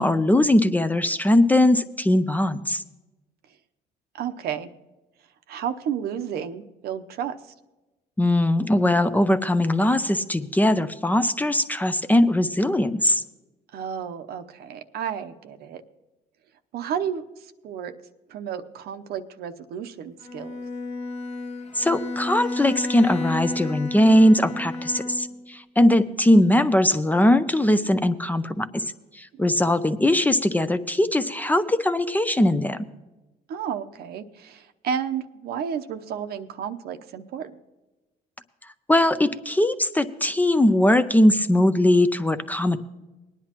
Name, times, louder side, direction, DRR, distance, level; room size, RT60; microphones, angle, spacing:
voice 1, 0.0-2.8 8.2-13.2 21.7-32.9 38.9-42.8, left 1 dB, 10° left, 11 dB, 0.5 m, -20 dB
voice 2, 4.1-4.7 5.5-7.3 13.7-15.8 16.7-17.9 18.3-20.6 29.3-29.4 33.5-37.6, right 8 dB, 70° right, 9 dB, 0.8 m, -32 dB
Bowed string instrument, 20.2-25.5, left 2 dB, 40° left, 1.1 m, -32 dB
19.5 x 10.5 x 2.9 m, 1.1 s
cardioid pair, 110°, 17 cm